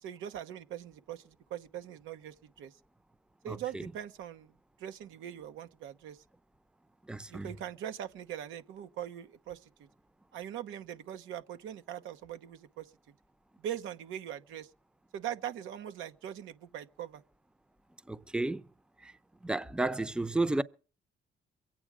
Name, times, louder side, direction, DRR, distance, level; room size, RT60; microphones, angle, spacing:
voice 1, 0.0-2.7 3.4-4.5 4.8-6.2 7.3-9.9 10.3-12.9 13.6-14.7 15.1-17.2, right 10 dB, 90° right, 1.0 m, -41 dB
voice 2, 3.5-3.8 7.1-7.5 18.1-18.6 19.0-19.1 19.4-20.6, right 2 dB, 5° right, 0.6 m, -32 dB
23.0 x 8.9 x 4.9 m
cardioid pair, 90°, 20 cm